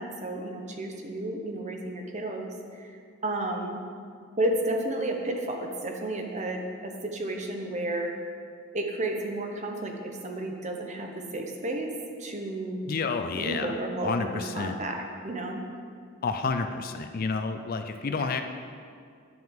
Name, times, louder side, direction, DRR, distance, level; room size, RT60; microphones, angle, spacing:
voice 1, 0.0-2.9 3.2-3.8 4.4-8.1 8.7-11.9 12.2-12.8 13.4-15.6 18.1-18.4, right 1 dB, 35° right, 2 dB, 0.9 m, -32 dB
voice 2, 12.9-13.7 14.0-14.7 16.2-18.4, left 4 dB, 45° left, 7 dB, 0.4 m, -30 dB
10.5 x 7.7 x 3.6 m, 2.2 s
head